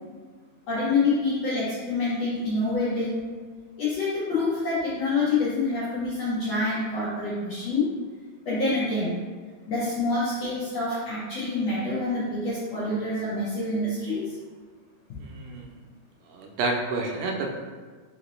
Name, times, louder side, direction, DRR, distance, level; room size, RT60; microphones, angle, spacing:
voice 1, 0.7-3.2 3.8-7.9 8.4-9.1 9.7-14.4, left 3 dB, 80° left, -10 dB, 1.4 m, -26 dB
voice 2, 15.2-15.7 16.3-17.6, right 3 dB, 80° right, 1 dB, 2.3 m, -29 dB
5.7 x 2.7 x 3.1 m, 1.5 s
omnidirectional pair, 4.4 m